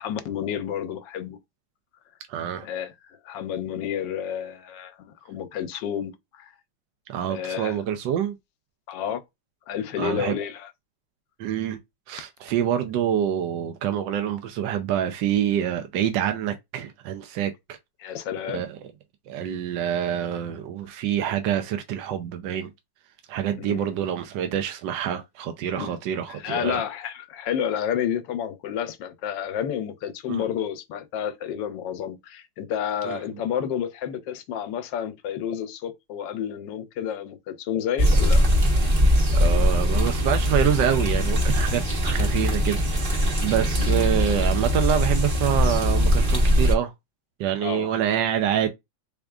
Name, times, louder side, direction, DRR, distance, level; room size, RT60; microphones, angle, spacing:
voice 1, 0.0-1.4 2.6-2.9 3.2-6.1 6.4-6.5 7.3-7.8 8.9-9.2 9.7-10.7 18.0-18.7 23.6-23.9 25.8-25.9 26.3-38.5 43.8-43.9 47.6-47.9, left 9 dB, 85° left, 1.3 m, -30 dB
voice 2, 2.3-2.7 7.1-8.4 10.0-10.4 11.4-11.8 12.1-17.8 18.5-18.7 19.3-22.7 23.3-26.8 30.3-30.4 33.0-33.2 39.3-46.9 47.4-48.7, right 10 dB, 80° right, 1.3 m, -26 dB
sound 1, 38.0-46.7, equal, 35° right, 1.0 m, -21 dB
3.6 x 3.5 x 2.3 m
omnidirectional pair, 1.9 m